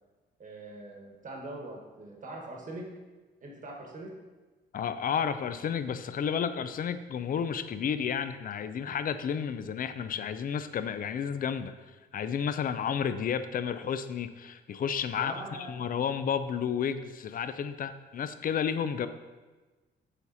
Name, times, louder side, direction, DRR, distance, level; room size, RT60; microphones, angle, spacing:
voice 1, 0.4-2.9 3.4-4.1 15.1-15.8 19.0-19.1, right 2 dB, 40° right, 0 dB, 1.4 m, -42 dB
voice 2, 4.7-11.7 12.1-19.1, left 7 dB, 45° left, 11 dB, 0.5 m, -31 dB
7.0 x 4.2 x 4.1 m, 1.2 s
cardioid pair, 90°, 20 cm